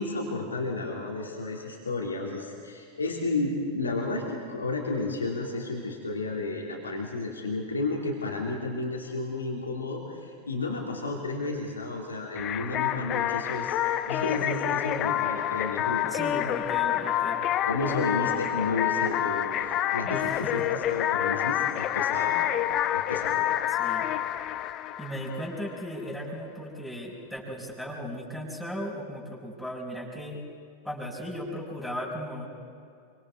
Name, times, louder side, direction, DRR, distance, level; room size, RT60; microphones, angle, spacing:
voice 1, 0.0-13.8 14.1-16.3 17.6-22.4 22.9-23.4, left 3 dB, 80° left, -2 dB, 3.0 m, -32 dB
sound 1, 12.3-25.8, left 12 dB, 35° left, 0.8 m, -28 dB
voice 2, 16.1-17.4 20.0-20.2 23.7-24.1 25.0-30.4 30.8-32.5, equal, ahead, -4 dB, 5.6 m, -36 dB
26.0 x 25.0 x 4.8 m, 2.4 s
figure-of-eight pair, 90°, 0 cm